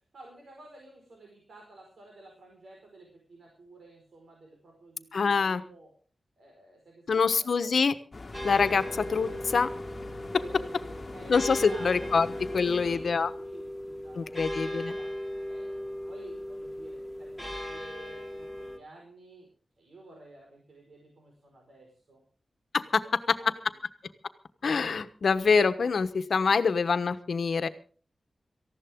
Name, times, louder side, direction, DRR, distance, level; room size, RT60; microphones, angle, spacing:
voice 1, 0.1-5.9 6.4-7.7 10.3-12.2 12.6-15.1 15.5-19.5 19.8-22.2 23.0-23.8, right 2 dB, 85° right, 0 dB, 5.0 m, -52 dB
voice 2, 5.1-5.6 7.1-7.9 8.4-8.8 9.1-9.7 11.3-12.3 12.5-13.3 14.2-14.9 22.7-23.0 23.3-23.4 24.6-27.7, left 5 dB, 75° left, 11 dB, 1.2 m, -25 dB
sound 1, 8.1-13.3, left 2 dB, 35° left, 1.6 m, -43 dB
sound 2, 8.3-18.8, left 1 dB, 15° right, 2.8 m, -37 dB
18.5 x 15.0 x 3.7 m, 0.41 s
wide cardioid pair, 105°, 0 cm